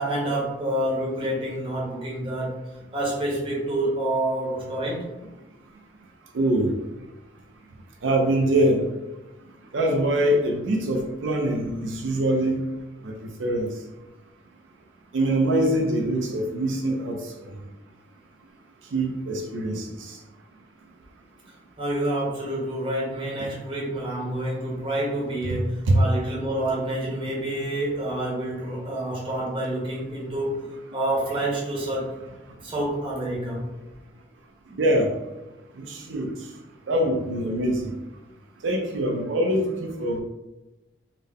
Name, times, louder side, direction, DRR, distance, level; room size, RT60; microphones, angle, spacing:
voice 1, 0.0-2.6 2.9-5.0 15.2-15.3 21.8-32.2 32.6-33.7, right 1 dB, 30° right, -5 dB, 0.9 m, -28 dB
voice 2, 6.3-6.7 8.0-8.8 9.7-12.6 13.0-13.1 13.4-13.7 15.1-17.2 18.9-20.2 25.5-26.0 34.8-35.1 35.8-36.3 36.9-37.9 38.6-40.2, right 1 dB, 90° right, 2 dB, 0.5 m, -23 dB
3.7 x 2.1 x 3.5 m, 1.0 s
head